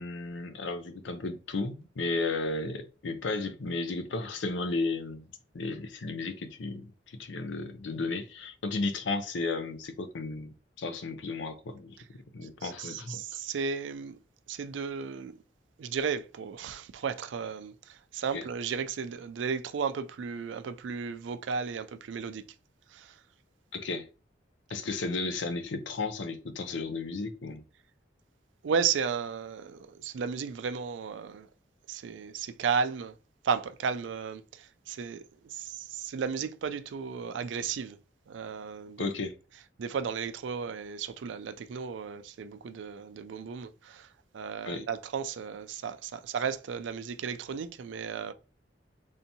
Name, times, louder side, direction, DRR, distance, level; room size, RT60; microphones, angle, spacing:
voice 1, 0.0-5.2 5.5-13.2 18.3-18.4 23.7-24.1 24.7-27.6 39.0-39.4 44.7-44.8, left 3 dB, 85° left, 0.5 m, -34 dB
voice 2, 12.6-14.2 14.5-15.4 15.8-22.5 22.9-23.2 28.6-31.5 31.9-33.2 33.4-38.0 38.3-39.1 39.8-44.1 44.3-48.3, right 6 dB, 85° right, 0.4 m, -34 dB
3.4 x 2.8 x 2.7 m
head